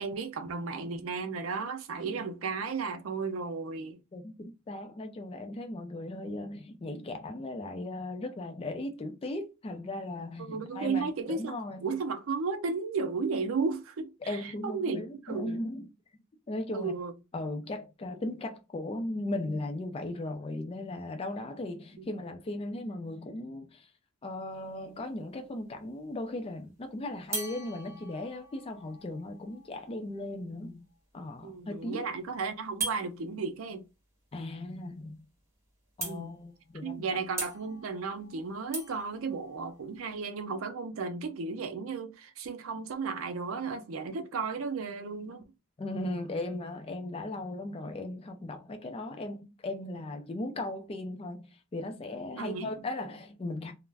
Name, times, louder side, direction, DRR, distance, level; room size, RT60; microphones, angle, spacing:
voice 1, 0.0-4.0 10.4-11.5 11.8-15.6 16.7-17.1 22.0-22.1 31.4-33.8 36.0-36.3 36.8-45.4 52.4-52.7, right 4 dB, 70° right, 0.5 m, -34 dB
voice 2, 4.1-12.0 14.3-15.9 16.5-17.0 17.3-23.9 24.2-30.8 31.1-32.1 34.3-35.2 36.0-37.2 45.8-53.7, left 2 dB, 25° left, 0.4 m, -37 dB
sound 1, 24.5-25.0 27.3-31.0 32.8-33.0 35.0-35.1 35.4-35.5 36.0-36.6 37.4-40.1, right 3 dB, 15° right, 0.7 m, -41 dB
2.3 x 2.1 x 3.2 m
head